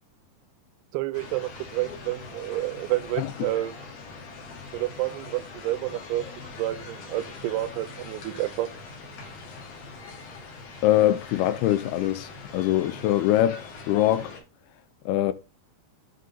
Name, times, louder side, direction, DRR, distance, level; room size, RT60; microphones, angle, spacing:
voice 1, 0.9-3.7 4.7-6.2 6.6-8.7, right 16 dB, 85° right, 2.6 m, -29 dB
sound 1, 1.1-14.4, left 4 dB, 65° left, 3.4 m, -42 dB
voice 2, 10.8-14.3 15.1-15.3, left 13 dB, 85° left, 2.6 m, -23 dB
8.2 x 3.8 x 5.4 m
omnidirectional pair, 4.6 m